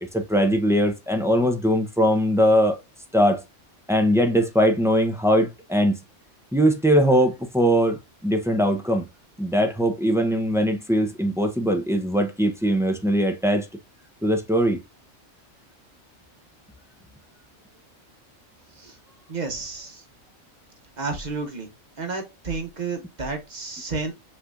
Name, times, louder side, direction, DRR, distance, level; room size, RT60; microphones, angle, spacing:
voice 1, 0.1-2.8 3.1-3.4 3.9-6.0 6.5-9.1 9.4-13.7 14.2-14.8, equal, 5° right, 0.5 m, -21 dB
voice 2, 19.3-20.0 21.0-21.7 22.0-24.1, right 4 dB, 35° right, 1.2 m, -31 dB
5.8 x 3.3 x 2.5 m
omnidirectional pair, 1.3 m